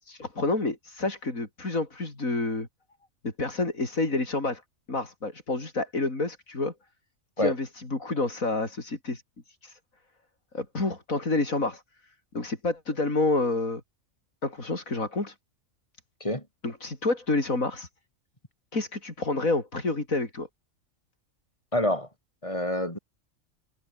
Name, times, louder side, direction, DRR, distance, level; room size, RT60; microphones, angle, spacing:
voice 1, 0.0-2.7 3.2-4.6 4.9-6.7 7.4-9.8 10.5-11.8 12.3-13.8 14.4-15.3 16.6-17.9 18.7-20.5, left 2 dB, 85° left, 5.1 m, -29 dB
voice 2, 21.7-22.1 22.4-23.0, left 1 dB, 25° left, 5.9 m, -27 dB
omnidirectional pair, 1.4 m